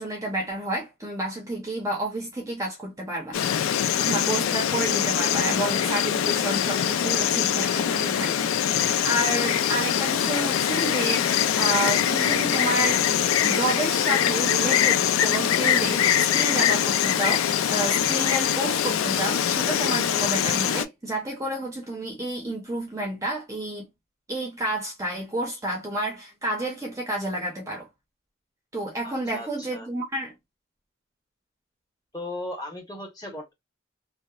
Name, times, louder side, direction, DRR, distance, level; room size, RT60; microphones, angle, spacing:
voice 1, 0.0-3.4 4.1-13.0 13.4-23.9 24.3-27.9 28.7-30.3, right 1 dB, 15° right, 0.5 m, -30 dB
Insect, 3.3-20.9, left 9 dB, 90° left, 0.3 m, -23 dB
voice 2, 29.0-29.9 32.1-33.5, left 1 dB, 20° left, 0.8 m, -37 dB
2.7 x 2.0 x 2.2 m
head